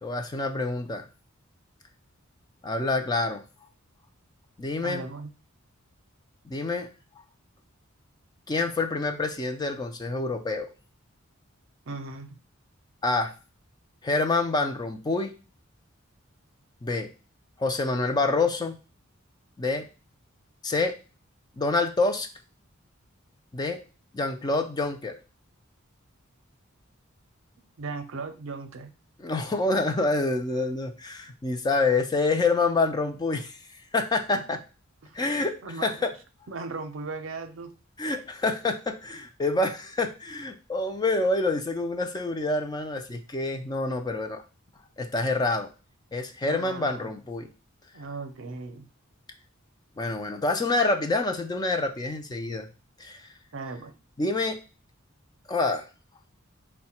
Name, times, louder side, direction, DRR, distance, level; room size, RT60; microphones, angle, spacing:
voice 1, 0.0-1.0 2.6-3.4 4.6-5.1 6.5-6.9 8.5-10.7 13.0-13.3 14.0-15.3 16.8-17.1 17.6-18.8 19.6-19.8 20.6-20.9 21.6-22.3 23.5-23.8 24.1-25.1 29.2-33.6 33.9-34.6 35.1-35.5 35.8-36.1 38.0-44.4 45.0-45.7 46.1-47.5 50.0-52.7 53.0-53.2 54.2-54.6 55.5-55.8, left 3 dB, 20° left, 6 dB, 0.4 m, -27 dB
voice 2, 4.8-5.3 11.9-12.4 27.8-28.9 34.3-34.4 35.0-35.2 35.6-36.0 36.5-37.7 46.4-47.1 47.9-48.9 53.5-53.9, right 3 dB, 65° right, 8 dB, 0.6 m, -37 dB
4.7 x 2.1 x 4.2 m, 0.34 s
head